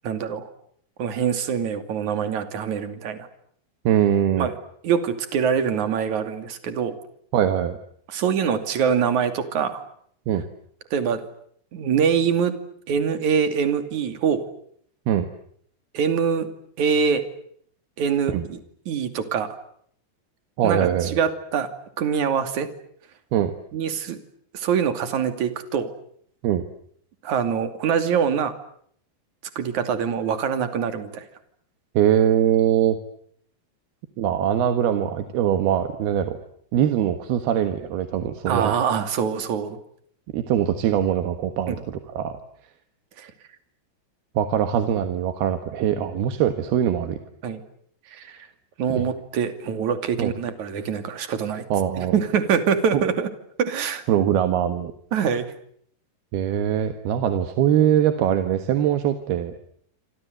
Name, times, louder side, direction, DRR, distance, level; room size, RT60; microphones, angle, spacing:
voice 1, 0.0-0.5 1.0-3.3 4.4-4.5 4.8-7.0 8.1-9.8 10.9-11.2 11.7-12.5 12.9-14.4 15.9-16.5 16.8-17.2 18.0-18.6 18.9-19.5 20.6-21.7 22.0-22.7 23.7-24.2 24.5-25.9 27.2-28.5 29.6-31.3 38.5-39.8 41.7-41.8 43.2-43.3 47.4-47.6 48.1-48.5 48.8-51.6 52.0-53.3 53.6-54.0 55.1-55.5, right 7 dB, 50° right, 9 dB, 3.6 m, -24 dB
voice 2, 3.8-4.5 7.3-7.8 10.3-10.4 15.1-15.3 18.3-18.4 20.6-21.2 23.3-23.5 26.4-26.6 31.9-33.0 34.2-36.4 36.7-38.7 40.3-42.4 44.4-47.2 49.0-49.1 50.2-50.3 51.7-52.2 52.9-53.0 54.1-54.9 56.3-59.5, right 10 dB, 70° right, 8 dB, 3.3 m, -22 dB
28.0 x 26.5 x 8.0 m, 0.66 s
omnidirectional pair, 4.9 m